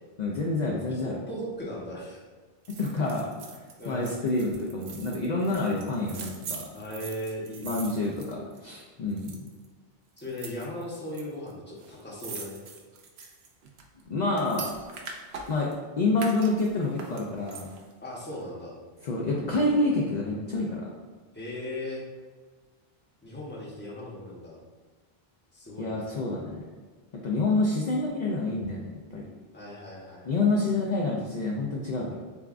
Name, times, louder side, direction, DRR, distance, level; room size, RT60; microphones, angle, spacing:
voice 1, 0.2-1.2 2.8-6.7 7.6-9.5 14.1-14.7 15.5-15.7 16.0-17.7 19.0-20.8 25.8-26.6 27.2-29.2 30.3-32.1, left 2 dB, 50° left, -3 dB, 0.6 m, -28 dB
voice 2, 0.9-2.2 3.8-4.1 6.7-8.0 10.2-12.6 18.0-18.7 21.3-22.0 23.2-24.6 25.5-26.1 29.5-30.3, left 1 dB, 10° left, -4 dB, 0.8 m, -38 dB
sound 1, 2.7-8.8 9.1-9.7 10.2-11.2 11.5-11.6 11.8-15.8 16.1-17.9 18.3-18.4, right 5 dB, 85° right, 0.9 m, -42 dB
6.9 x 2.3 x 2.4 m, 1.4 s
omnidirectional pair, 1.0 m